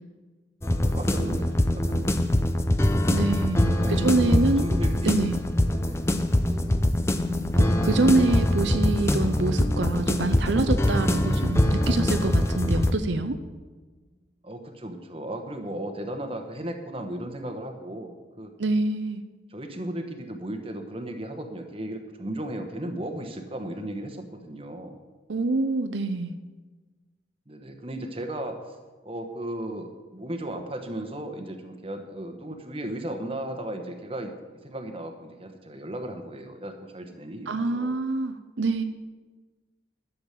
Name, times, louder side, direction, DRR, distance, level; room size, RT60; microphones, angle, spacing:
sound 1, 0.6-12.9, left 1 dB, 15° left, 0.5 m, -23 dB
voice 1, 0.8-1.5 1.7-2.5 3.7-5.4 5.7-6.0 6.7-6.9 14.4-18.5 19.5-25.0 27.5-28.7 29.0-34.3 34.6-38.0, right 1 dB, 30° right, 5 dB, 1.2 m, -35 dB
voice 2, 3.1-4.7 5.0-5.4 7.6-13.4 18.6-19.2 25.3-26.3 37.5-38.8, right 2 dB, 80° right, 8 dB, 0.7 m, -25 dB
sound 2, 5.5-13.6, left 1 dB, 5° right, 1.8 m, -43 dB
12.0 x 7.2 x 7.5 m, 1.3 s
head